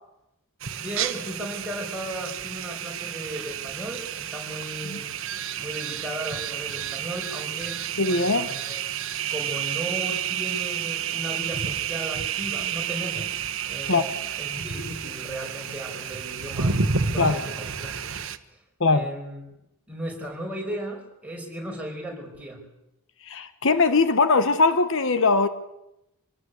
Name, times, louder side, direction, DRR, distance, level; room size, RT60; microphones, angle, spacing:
sound 1, 0.6-18.4, right 7 dB, 65° right, 1.3 m, -30 dB
voice 1, 0.8-5.1 5.6-8.8 9.3-13.4 13.7-18.2 18.5-18.6 18.9-19.4 19.9-22.6, right 1 dB, 5° right, -1 dB, 5.8 m, -36 dB
voice 2, 8.0-8.5 13.9-14.0 17.2-17.4 18.8-19.1 23.3-25.5, left 3 dB, 60° left, 11 dB, 1.2 m, -21 dB
26.0 x 18.0 x 8.1 m, 0.88 s
head